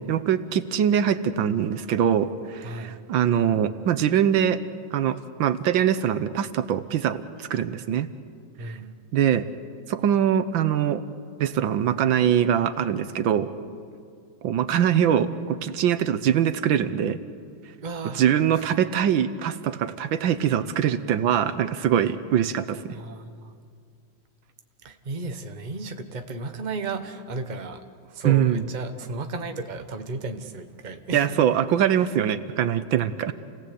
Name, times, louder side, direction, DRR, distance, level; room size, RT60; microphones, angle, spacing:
voice 1, 0.0-4.6 4.9-8.1 8.6-8.8 9.1-9.5 9.9-11.0 11.4-13.5 14.4-17.2 18.2-23.0 28.3-28.6 31.1-33.3, right 9 dB, 80° right, 12 dB, 1.6 m, -23 dB
voice 2, 2.6-3.0 8.6-8.9 17.8-18.2 18.5-18.8 22.9-23.5 24.8-31.4, right 3 dB, 30° right, 7 dB, 1.1 m, -34 dB
29.0 x 18.5 x 8.5 m, 2.2 s
omnidirectional pair, 2.1 m